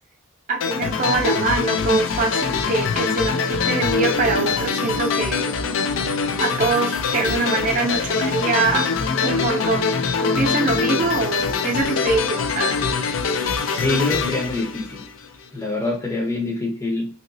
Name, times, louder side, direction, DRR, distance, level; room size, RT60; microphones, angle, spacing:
voice 1, 0.5-5.5 6.4-8.9 9.2-9.9 10.2-12.8, right 3 dB, 40° right, 2 dB, 0.5 m, -23 dB
sound 1, 0.6-15.4, left 5 dB, 80° left, 0.4 m, -23 dB
voice 2, 13.7-15.0 15.5-17.1, left 2 dB, 15° left, -1 dB, 0.6 m, -25 dB
2.9 x 2.8 x 2.6 m, 0.40 s
head